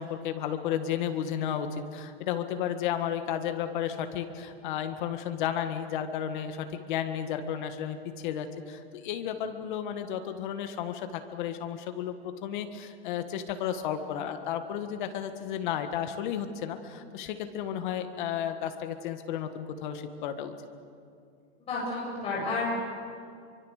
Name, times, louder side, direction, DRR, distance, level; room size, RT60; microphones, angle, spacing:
voice 1, 0.0-20.5, left 9 dB, 45° left, 8 dB, 1.8 m, -33 dB
voice 2, 21.7-22.7, left 3 dB, 15° left, -6 dB, 7.7 m, -31 dB
26.5 x 24.0 x 6.6 m, 2.3 s
supercardioid pair, 170°, 34 cm